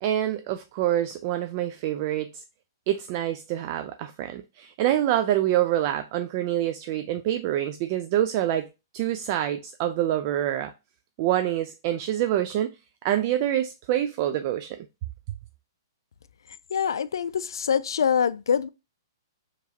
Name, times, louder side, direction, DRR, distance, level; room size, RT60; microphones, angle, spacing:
voice 1, 0.0-2.4 2.9-8.7 8.9-10.7 11.2-12.7 13.0-14.8, right 12 dB, 40° right, 0.3 m, -26 dB
voice 2, 16.7-18.7, left 7 dB, 85° left, 0.3 m, -24 dB
4.8 x 3.0 x 2.8 m
hypercardioid pair, 145°, 2 cm